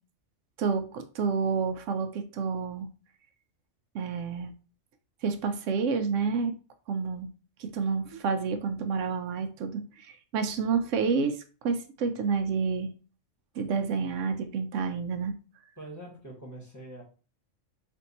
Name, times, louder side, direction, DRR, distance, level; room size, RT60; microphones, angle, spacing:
voice 1, 0.6-2.9 3.9-4.5 5.2-6.5 6.9-7.3 7.6-12.9 13.6-15.3, right 5 dB, 80° right, 0.9 m, -29 dB
voice 2, 15.8-17.0, right 1 dB, 15° left, 1.1 m, -44 dB
3.5 x 2.6 x 4.1 m
omnidirectional pair, 1.3 m